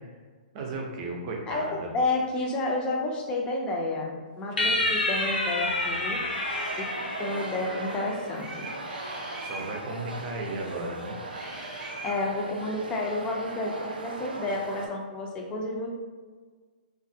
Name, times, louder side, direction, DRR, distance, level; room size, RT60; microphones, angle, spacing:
voice 1, 0.5-1.9 4.5-5.3 5.6-6.2 9.4-11.2, right 2 dB, 35° right, 0 dB, 0.6 m, -36 dB
voice 2, 1.9-6.2 7.2-8.7 12.0-15.9, left 2 dB, 20° left, 0 dB, 0.5 m, -30 dB
sound 1, 4.6-8.1, left 2 dB, 85° left, 0.6 m, -29 dB
sound 2, 6.3-14.9, right 2 dB, 90° right, 0.5 m, -39 dB
sound 3, 6.5-6.9 8.4-9.7 11.3-12.2, right 2 dB, 15° right, 0.9 m, -41 dB
3.1 x 2.5 x 2.7 m, 1.5 s
hypercardioid pair, 135°, 5 cm